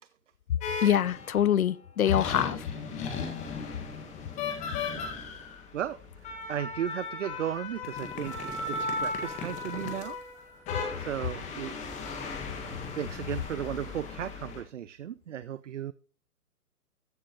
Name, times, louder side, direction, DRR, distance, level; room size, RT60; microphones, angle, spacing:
sound 1, 0.6-1.4 2.0-14.6, left 4 dB, 15° left, 1.6 m, -36 dB
voice 1, 0.8-2.6, left 10 dB, 65° left, 0.6 m, -24 dB
voice 2, 6.5-10.2 11.0-11.7 12.9-15.9, right 10 dB, 55° right, 0.5 m, -35 dB
14.0 x 7.4 x 2.9 m
figure-of-eight pair, 135°, 46 cm